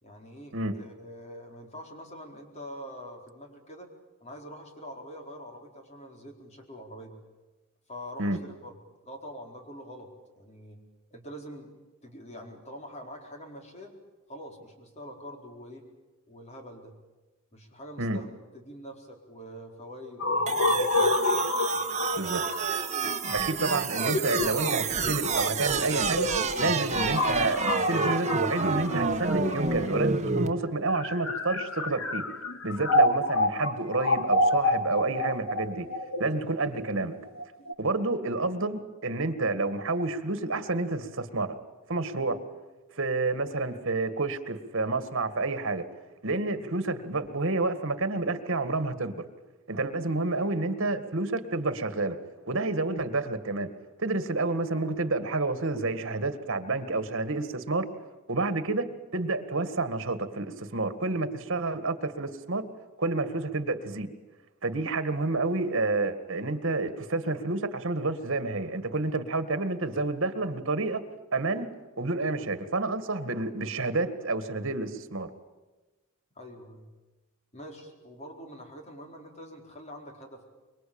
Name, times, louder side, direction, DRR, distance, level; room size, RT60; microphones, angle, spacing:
voice 1, 0.0-3.9 4.2-7.2 7.9-8.8 9.0-10.1 10.3-10.8 11.1-11.7 12.0-13.9 14.3-15.8 16.3-17.0 17.5-18.3 18.5-21.1 76.4-76.9 77.5-80.4, equal, 35° left, 2 dB, 4.5 m, -45 dB
sound 1, 20.2-30.0 30.8-37.7, left 2 dB, 70° left, 2.0 m, -28 dB
sound 2, 20.5-30.5, right 5 dB, 35° right, 1.6 m, -29 dB
voice 2, 23.3-26.3 26.6-32.2 32.6-35.9 36.2-37.1 37.8-41.6 41.9-42.4 43.0-45.8 46.2-49.2 49.7-52.2 52.5-53.7 54.0-57.9 58.3-58.9 59.1-62.6 63.0-64.1 64.6-71.0 71.3-71.7 72.0-75.3, right 3 dB, 65° right, 10 dB, 1.9 m, -29 dB
25.5 x 23.0 x 8.8 m, 1.2 s
head